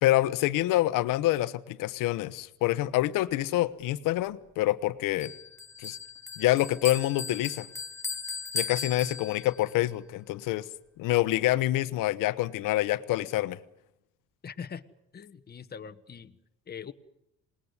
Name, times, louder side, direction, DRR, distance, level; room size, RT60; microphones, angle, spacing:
voice 1, 0.0-5.3 5.8-6.0 6.4-7.7 8.5-10.6 11.0-13.6, left 15 dB, 90° left, 15 dB, 1.2 m, -26 dB
Bell, 5.2-9.7, left 4 dB, 10° left, 1.6 m, -37 dB
voice 2, 14.4-14.8 15.1-16.4 16.7-16.9, left 7 dB, 30° left, 10 dB, 1.3 m, -42 dB
27.5 x 20.0 x 9.8 m, 0.86 s
cardioid pair, 125°, 31 cm